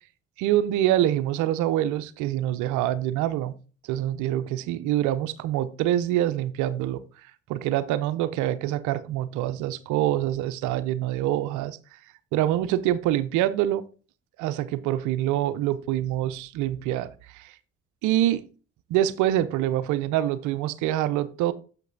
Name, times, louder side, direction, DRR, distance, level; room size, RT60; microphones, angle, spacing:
voice 1, 0.4-3.5 3.9-7.0 7.5-11.8 12.3-13.8 14.4-17.5 18.0-18.4 18.9-21.5, right 13 dB, 80° right, 13 dB, 0.6 m, -25 dB
6.7 x 5.3 x 3.9 m, 0.36 s
supercardioid pair, 60°, 30 cm